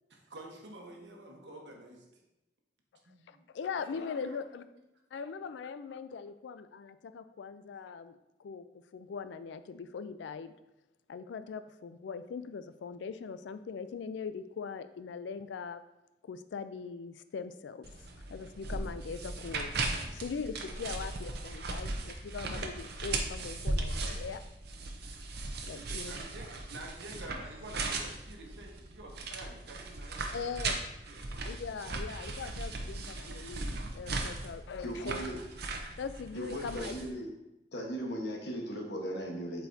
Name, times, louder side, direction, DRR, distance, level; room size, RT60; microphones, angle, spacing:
voice 1, 0.1-2.0 3.1-3.4 3.9-4.4 25.8-31.3, right 1 dB, 80° right, 1 dB, 1.2 m, -49 dB
voice 2, 3.3-4.6 5.1-10.5 11.1-15.8 16.2-17.9 18.2-19.7 20.1-24.4 25.6-26.1 30.3-30.9 31.5-35.2 36.0-36.9, left 5 dB, 85° left, 12 dB, 0.4 m, -41 dB
sound 1, 17.8-37.1, right 3 dB, 65° right, 0.7 m, -38 dB
voice 3, 34.8-35.4 36.3-37.3 37.7-39.7, equal, 70° left, 0 dB, 1.2 m, -37 dB
7.8 x 4.5 x 2.7 m, 0.94 s
head